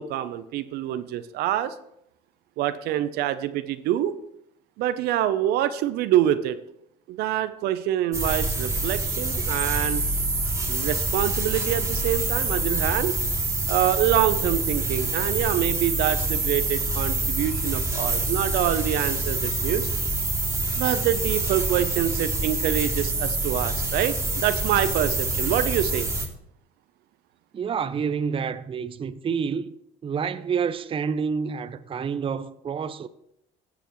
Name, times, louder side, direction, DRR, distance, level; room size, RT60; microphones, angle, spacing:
voice 1, 0.0-1.7 2.6-4.1 4.8-6.6 7.1-10.0 10.7-13.2 13.7-19.9 20.8-26.1, right 12 dB, 75° right, 0.7 m, -26 dB
sound 1, 8.1-26.3, right 2 dB, 15° right, 2.4 m, -26 dB
voice 2, 27.5-29.7 30.0-33.1, right 6 dB, 30° right, 0.6 m, -28 dB
16.5 x 7.0 x 3.1 m
supercardioid pair, 80°, 17 cm